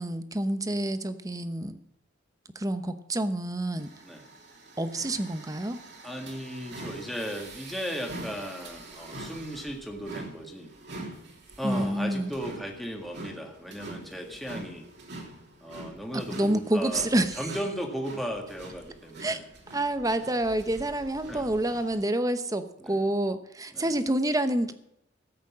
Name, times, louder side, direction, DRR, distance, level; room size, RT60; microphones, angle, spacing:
voice 1, 0.0-1.8 2.5-3.9 4.8-5.8 11.6-12.3 16.1-17.4 19.2-19.4 19.7-24.7, right 1 dB, 20° right, 10 dB, 0.9 m, -28 dB
sound 1, 3.8-22.0, right 2 dB, 60° right, 3.0 m, -44 dB
voice 2, 6.0-10.7 11.6-14.8 15.6-17.1 17.4-19.4 21.3-21.5 22.8-23.1 23.7-24.0, equal, ahead, 1 dB, 1.8 m, -36 dB
14.5 x 8.2 x 7.4 m, 0.79 s
head